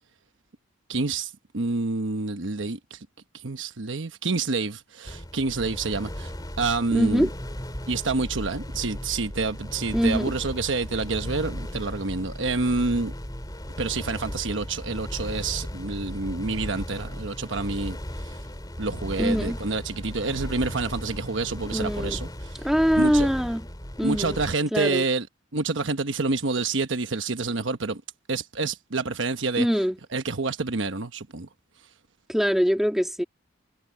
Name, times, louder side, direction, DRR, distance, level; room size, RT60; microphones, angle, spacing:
voice 1, 0.9-3.0 3.4-6.3 6.6-7.3 7.9-13.1 13.8-18.0 18.8-22.5 23.0-23.3 24.0-25.3 25.5-28.0 28.3-29.7 30.1-31.5, right 3 dB, 65° right, 1.1 m, -28 dB
sound 1, 5.1-24.6, equal, 20° left, 3.3 m, -36 dB
voice 2, 6.9-7.3 9.9-10.3 19.2-19.6 21.7-22.2 22.6-23.7 24.0-24.4 24.7-25.0 29.6-30.0 32.3-33.2, equal, ahead, 2.7 m, -23 dB
head